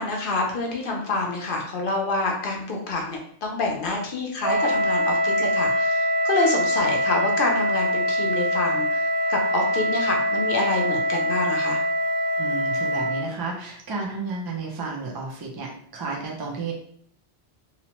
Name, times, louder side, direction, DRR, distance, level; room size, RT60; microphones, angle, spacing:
voice 1, 0.0-9.0 9.3-11.8, left 3 dB, 60° left, 0 dB, 0.7 m, -27 dB
Wind instrument woodwind instrument, 4.4-13.3, equal, 80° right, 1.3 m, -23 dB
voice 2, 12.4-16.7, right 4 dB, 35° right, -1 dB, 0.4 m, -32 dB
2.9 x 2.1 x 2.9 m, 0.63 s
omnidirectional pair, 1.1 m